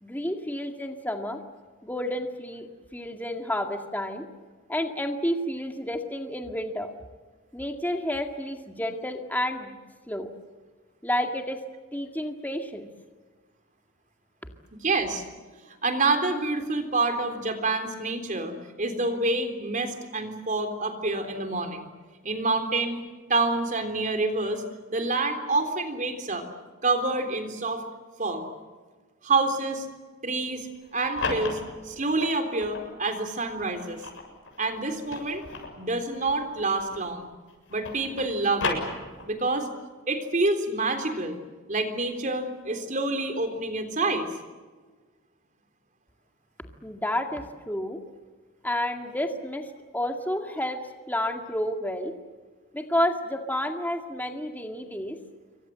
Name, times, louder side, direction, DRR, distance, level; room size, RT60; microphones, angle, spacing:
voice 1, 0.0-1.4 1.8-2.7 2.9-4.3 4.7-6.9 7.5-9.7 10.1-10.3 11.0-11.6 11.9-12.9 46.8-48.0 48.6-50.8 51.1-52.1 52.7-55.2, left 1 dB, 10° left, 4 dB, 2.0 m, -30 dB
voice 2, 14.8-15.2 15.7-21.9 22.2-23.0 23.3-24.6 24.9-26.4 26.8-27.8 28.2-28.5 29.2-29.9 30.2-30.7 30.9-34.0 34.6-35.4 35.8-37.3 37.7-38.8 39.3-39.7 40.1-41.4 41.7-44.3, right 3 dB, 35° right, 7 dB, 3.6 m, -27 dB
sound 1, 30.8-32.9 33.5-37.2 37.5-39.5, left 3 dB, 65° left, 7.2 m, -35 dB
28.0 x 24.0 x 7.7 m, 1.4 s
head